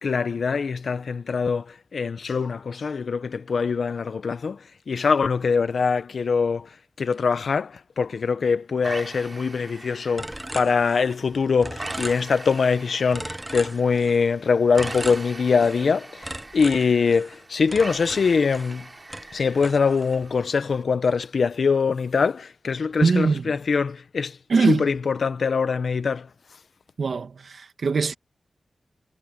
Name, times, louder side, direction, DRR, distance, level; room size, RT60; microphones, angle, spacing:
voice 1, 0.0-18.9 19.3-26.3, left 5 dB, 75° left, 0.9 m, -23 dB
sound 1, 8.8-20.8, right 2 dB, 30° right, 3.1 m, -42 dB
sound 2, 10.2-11.3 11.6-12.7 13.1-14.3 14.7-15.9 16.2-18.8 19.1-20.3, right 1 dB, 15° right, 1.0 m, -37 dB
voice 2, 23.0-23.4 24.5-24.9 27.0-28.1, right 4 dB, 70° right, 1.7 m, -22 dB
wide cardioid pair, 90°, 0 cm